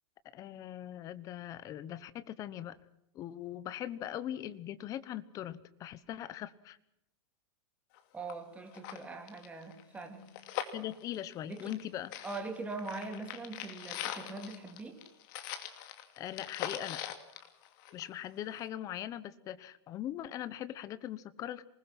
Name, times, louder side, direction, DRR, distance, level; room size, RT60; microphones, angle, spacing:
voice 1, 0.3-2.8 3.1-6.8 10.6-12.1 16.2-17.0 17.9-21.6, left 12 dB, 20° left, 1.0 m, -41 dB
sound 1, 7.9-8.0 8.3-8.4 8.7-11.9 12.1-18.2 18.6-18.7, left 11 dB, 40° left, 2.6 m, -42 dB
voice 2, 8.1-10.4 11.5-11.7 12.2-15.0, right 3 dB, 10° right, 2.8 m, -42 dB
27.0 x 20.0 x 6.0 m
supercardioid pair, 165°, 16 cm